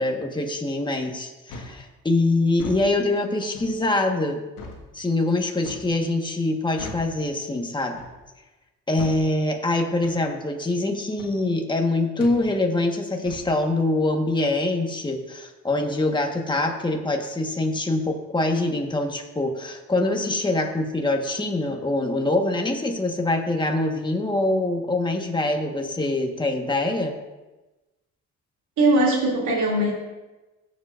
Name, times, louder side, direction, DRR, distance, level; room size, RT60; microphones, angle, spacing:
voice 1, 0.0-4.4 4.9-8.0 8.9-27.2, left 2 dB, 15° left, 3 dB, 1.4 m, -24 dB
sound 1, 1.5-1.8 2.5-2.8 3.5-3.8 4.6-4.8 5.6-5.9 6.8-7.1 8.0-8.2 9.0-9.2 10.0-10.2 11.2-11.4 12.2-12.4 13.3-13.5, left 3 dB, 90° left, 1.7 m, -38 dB
voice 2, 28.8-29.9, right 1 dB, 75° right, -4 dB, 2.6 m, -20 dB
16.5 x 7.6 x 2.5 m, 1.1 s
cardioid pair, 90°, 30 cm